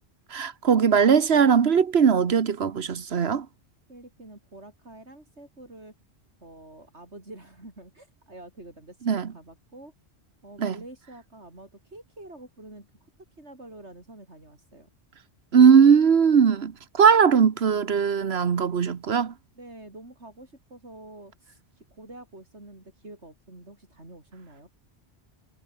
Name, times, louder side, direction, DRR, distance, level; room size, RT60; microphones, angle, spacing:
voice 1, 0.3-3.5 9.1-9.3 10.6-10.7 15.5-19.3, right 7 dB, 70° right, 1.4 m, -19 dB
voice 2, 3.9-5.9 6.4-9.9 10.4-12.9 13.4-14.9 19.5-24.7, right 1 dB, 85° right, 6.7 m, -47 dB
omnidirectional pair, 1.1 m